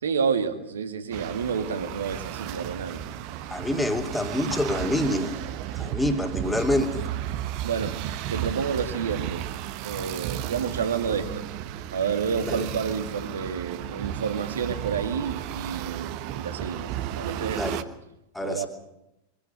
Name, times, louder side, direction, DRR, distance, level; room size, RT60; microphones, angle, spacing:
voice 1, 0.0-3.0 7.6-8.0 8.3-9.5 9.8-11.4 11.9-16.9 17.2-17.6 18.4-18.7, right 6 dB, 65° right, 8 dB, 2.2 m, -29 dB
sound 1, 1.1-17.8, right 12 dB, 45° right, 1.2 m, -34 dB
voice 2, 3.5-5.3 5.7-7.0 12.4-12.7 17.5-17.8 18.3-18.7, left 1 dB, 5° left, 5 dB, 2.7 m, -26 dB
23.5 x 16.5 x 8.2 m, 0.88 s
figure-of-eight pair, 90°, 0 cm